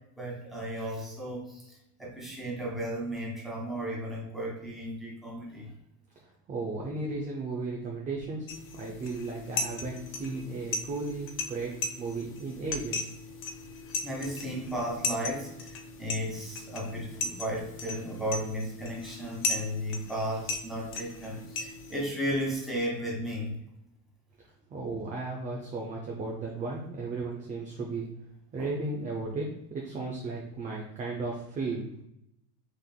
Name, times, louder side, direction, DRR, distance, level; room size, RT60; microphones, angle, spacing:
voice 1, 0.2-5.7 14.0-23.6 28.6-28.7, equal, ahead, -5 dB, 1.4 m, -34 dB
voice 2, 6.5-13.1 24.7-28.1 28.5-31.9, right 3 dB, 20° right, -1 dB, 0.5 m, -35 dB
sound 1, 8.5-22.1, left 3 dB, 30° left, 0.4 m, -37 dB
5.9 x 3.4 x 2.2 m, 0.80 s
cardioid pair, 150°, 42 cm